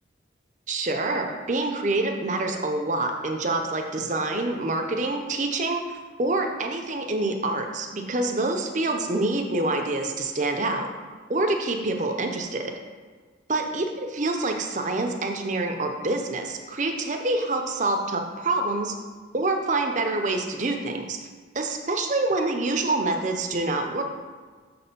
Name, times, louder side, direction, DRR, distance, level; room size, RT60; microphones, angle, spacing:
voice 1, 0.7-10.9 11.3-12.7 13.5-18.9 19.3-21.2 21.5-24.0, right 2 dB, 40° right, 4 dB, 0.6 m, -26 dB
6.4 x 4.3 x 5.3 m, 1.5 s
head